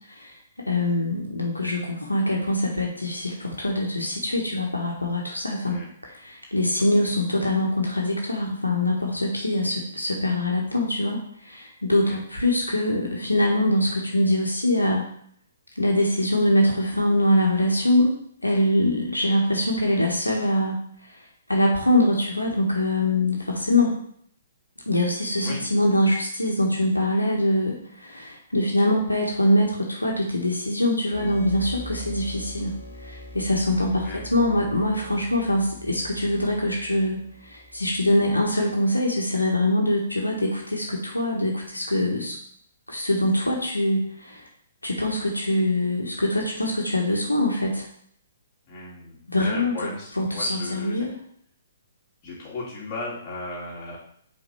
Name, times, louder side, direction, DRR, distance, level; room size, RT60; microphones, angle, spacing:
voice 1, 0.7-5.8 6.2-15.0 15.8-18.1 18.4-20.8 21.5-24.0 24.9-32.7 33.0-42.3 42.9-44.4 44.8-47.8 49.3-51.2, left 1 dB, 85° left, -1 dB, 1.3 m, -23 dB
sound 1, 31.1-38.6, left 1 dB, 65° left, 1.7 m, -42 dB
voice 2, 48.6-51.1 52.2-54.0, left 2 dB, 30° left, -6 dB, 2.8 m, -36 dB
5.1 x 4.1 x 5.5 m, 0.65 s
figure-of-eight pair, 125°, 0 cm